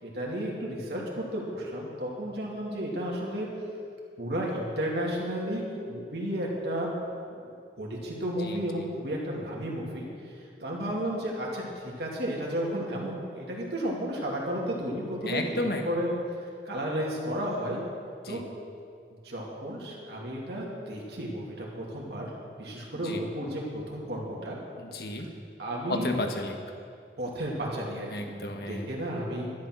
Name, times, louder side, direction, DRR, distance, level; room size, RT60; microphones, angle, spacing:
voice 1, 0.0-3.5 4.2-6.9 7.3-7.5 7.8-10.1 10.6-16.1 16.7-17.8 18.3-18.4 19.2-22.3 22.6-24.6 25.6-26.2 27.2-28.3 28.7-29.5, equal, 70° right, -3 dB, 2.7 m, -33 dB
voice 2, 8.4-8.9 15.3-15.8 18.2-18.4 22.9-23.2 24.8-25.3 25.9-26.6 28.1-28.9, left 1 dB, 65° left, 3 dB, 1.5 m, -33 dB
12.0 x 11.5 x 6.2 m, 2.3 s
head